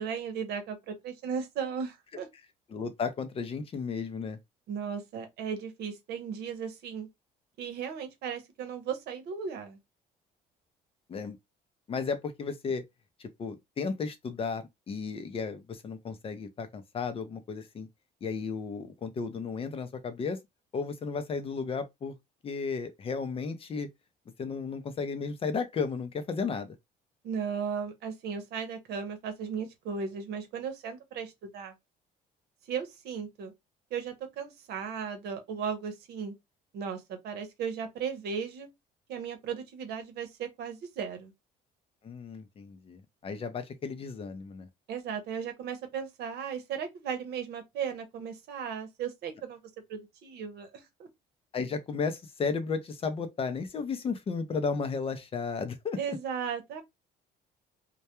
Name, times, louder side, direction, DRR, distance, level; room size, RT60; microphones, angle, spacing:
voice 1, 0.0-2.3 4.7-7.1 7.6-9.8 27.2-31.8 32.7-33.5 33.9-36.3 36.7-38.7 39.1-41.3 44.9-51.1 56.0-56.8, right 6 dB, 75° right, 0.8 m, -36 dB
voice 2, 2.7-4.4 11.1-11.4 11.9-12.8 13.4-17.9 18.2-20.4 20.7-22.1 22.4-23.9 24.4-26.7 42.0-44.7 51.5-56.0, left 5 dB, 35° left, 0.5 m, -34 dB
2.2 x 2.2 x 2.9 m
cardioid pair, 110°, 17 cm